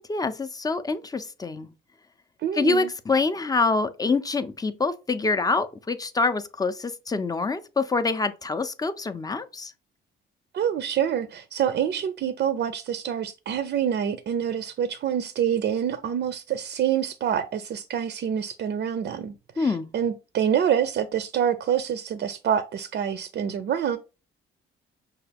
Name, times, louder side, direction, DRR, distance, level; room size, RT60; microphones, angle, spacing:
voice 1, 0.0-1.7 2.5-9.7 19.6-19.9, left 3 dB, 20° left, 0.5 m, -26 dB
voice 2, 2.4-2.9 10.5-24.0, right 9 dB, 60° right, 0.4 m, -26 dB
5.7 x 2.3 x 3.3 m
cardioid pair, 90°, 20 cm